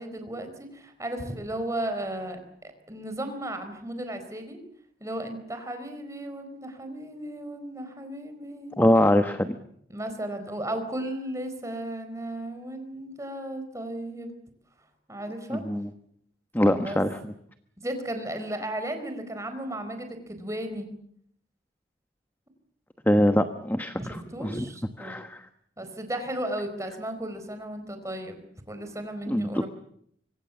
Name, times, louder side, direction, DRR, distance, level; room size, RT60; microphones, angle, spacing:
voice 1, 0.0-4.6 5.0-8.8 9.9-14.3 15.1-15.6 16.7-17.0 17.8-20.9 23.9-25.2 25.8-29.7, right 1 dB, 15° right, 7 dB, 4.4 m, -35 dB
voice 2, 8.8-9.5 15.5-15.9 16.5-17.2 23.1-24.7 25.0-25.4 29.3-29.6, left 1 dB, 10° left, 8 dB, 1.1 m, -23 dB
26.0 x 24.5 x 7.1 m, 0.68 s
head